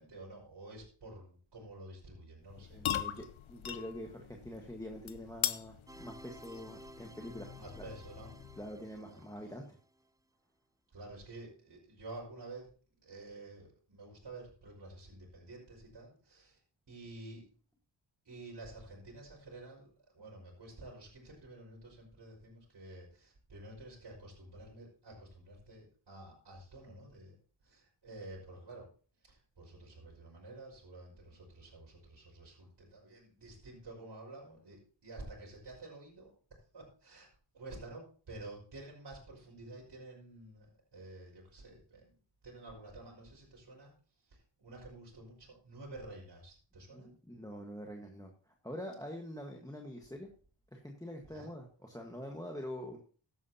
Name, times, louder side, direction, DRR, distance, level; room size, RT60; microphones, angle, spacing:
voice 1, 0.0-3.3 7.5-8.4 9.1-9.2 10.9-12.7 13.0-16.6 16.9-17.5 18.2-28.9 29.2-36.3 36.7-37.3 37.5-42.1 42.4-47.1 51.3-51.5, right 2 dB, 60° right, -5 dB, 5.3 m, -50 dB
sound 1, 2.4-8.8, left 10 dB, 80° left, 0.8 m, -41 dB
voice 2, 2.7-7.5 7.8-7.9 8.6-9.8 46.9-50.3 50.7-53.0, equal, 5° left, 2 dB, 1.5 m, -45 dB
sound 2, 5.9-10.0, right 1 dB, 10° right, 0.4 m, -55 dB
15.5 x 11.0 x 2.9 m, 0.41 s
wide cardioid pair, 105°, 47 cm